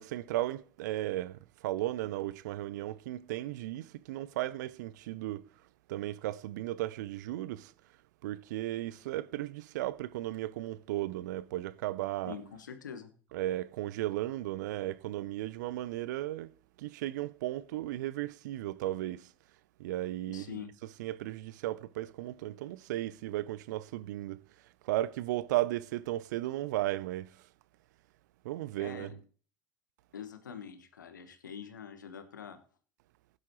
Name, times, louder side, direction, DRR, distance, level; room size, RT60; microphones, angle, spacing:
voice 1, 0.0-5.5 5.9-7.7 8.2-12.4 13.3-19.3 19.8-20.6 21.0-24.4 24.8-27.4 28.4-29.1, right 15 dB, 70° right, 0.6 m, -35 dB
voice 2, 12.3-13.1 20.3-20.7 28.8-29.2 30.1-32.6, left 8 dB, 85° left, 1.4 m, -45 dB
16.5 x 9.7 x 3.1 m
hypercardioid pair, 70°, 10 cm